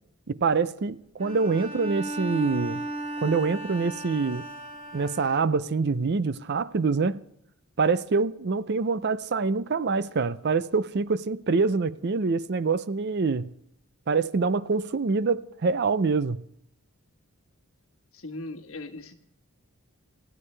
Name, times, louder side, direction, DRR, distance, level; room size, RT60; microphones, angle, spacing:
voice 1, 0.3-2.9 3.2-4.5 4.9-7.2 7.8-13.5 14.1-16.5, right 4 dB, 50° right, 0.5 m, -25 dB
Bowed string instrument, 1.2-5.8, right 1 dB, 30° right, 4.3 m, -36 dB
voice 2, 18.1-19.2, left 2 dB, 65° left, 1.4 m, -39 dB
20.5 x 15.0 x 3.3 m
head